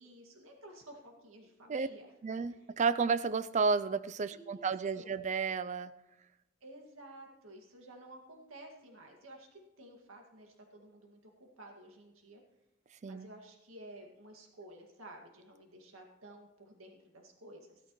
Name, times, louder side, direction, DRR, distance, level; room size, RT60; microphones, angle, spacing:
voice 1, 0.0-2.1 2.5-2.7 4.3-4.6 4.9-5.2 6.6-12.4 13.1-17.8, right 1 dB, 75° right, 2 dB, 2.1 m, -53 dB
voice 2, 2.2-5.9 13.0-13.3, right 5 dB, 35° right, 14 dB, 0.4 m, -32 dB
15.0 x 13.0 x 3.1 m, 0.96 s
head